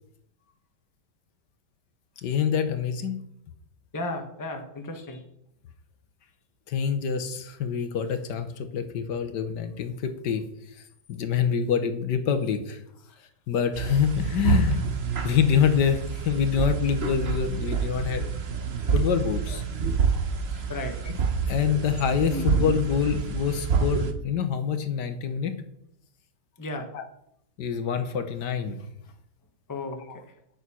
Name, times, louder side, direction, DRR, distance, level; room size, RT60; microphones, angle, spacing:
voice 1, 2.2-3.2 6.7-10.4 11.1-12.8 13.5-14.9 15.2-18.2 18.9-19.6 21.0-21.1 21.5-25.5 26.9-27.1 27.6-28.8 30.1-30.2, left 7 dB, 75° left, 9 dB, 1.6 m, -26 dB
voice 2, 3.9-5.2 20.7-21.0 26.6-26.9 29.7-30.0, left 2 dB, 15° left, 4 dB, 1.1 m, -34 dB
sound 1, 13.7-24.1, right 5 dB, 45° right, 1.0 m, -27 dB
9.8 x 6.9 x 6.1 m, 0.76 s
omnidirectional pair, 1.9 m